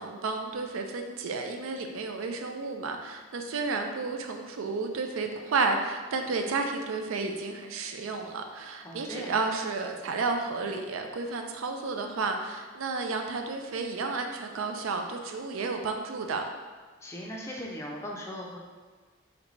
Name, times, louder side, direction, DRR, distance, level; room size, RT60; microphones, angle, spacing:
voice 1, 0.0-16.4, right 4 dB, 80° right, 4 dB, 0.4 m, -32 dB
voice 2, 8.8-9.3 17.0-18.6, equal, 15° left, -2 dB, 0.4 m, -39 dB
3.9 x 3.3 x 3.0 m, 1.4 s
head